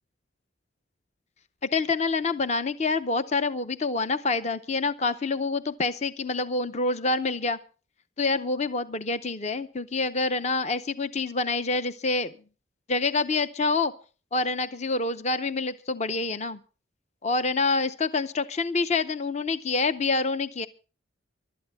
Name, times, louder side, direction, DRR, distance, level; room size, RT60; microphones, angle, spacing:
voice 1, 1.6-7.6 8.2-12.3 12.9-13.9 14.3-16.6 17.2-20.7, left 3 dB, 35° left, 12 dB, 0.6 m, -27 dB
24.0 x 12.5 x 3.5 m, 0.37 s
head